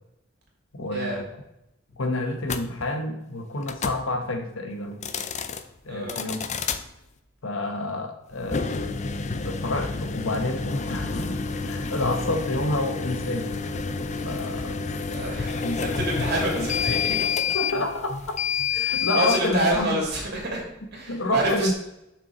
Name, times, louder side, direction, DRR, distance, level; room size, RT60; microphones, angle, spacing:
voice 1, 0.7-1.3 2.0-5.0 5.8-6.4 7.4-8.9 9.4-13.6 14.2-14.9 15.6-16.3 16.6-16.7 17.1-17.2 17.5-18.2 18.7-20.0 21.1-21.7, left 2 dB, 90° left, 6 dB, 1.1 m, -29 dB
sound 1, 2.4-2.6 3.6-4.0 4.9-5.6 6.1-6.8 8.4-19.4, left 5 dB, 35° left, 0.5 m, -29 dB
voice 2, 5.9-6.2 15.1-17.2 19.1-20.6 20.9-21.7, right 1 dB, 55° right, -2 dB, 2.9 m, -27 dB
7.1 x 6.0 x 3.9 m, 0.86 s
head